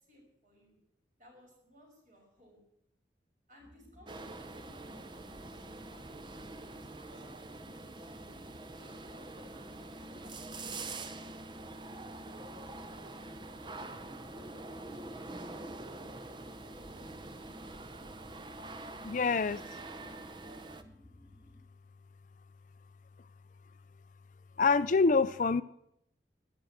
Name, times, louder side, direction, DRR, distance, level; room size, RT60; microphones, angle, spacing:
voice 1, 0.1-0.8 1.2-2.6 3.5-9.8 10.2-10.8, left 1 dB, 45° right, 0 dB, 5.9 m, -61 dB
sound 1, 3.6-21.6, equal, 5° right, 3.5 m, -58 dB
sound 2, 4.1-20.8, right 2 dB, 25° right, 0.8 m, -45 dB
voice 2, 19.0-19.6 24.6-25.6, left 4 dB, 45° left, 14 dB, 0.4 m, -26 dB
12.0 x 10.5 x 8.3 m, 0.78 s
head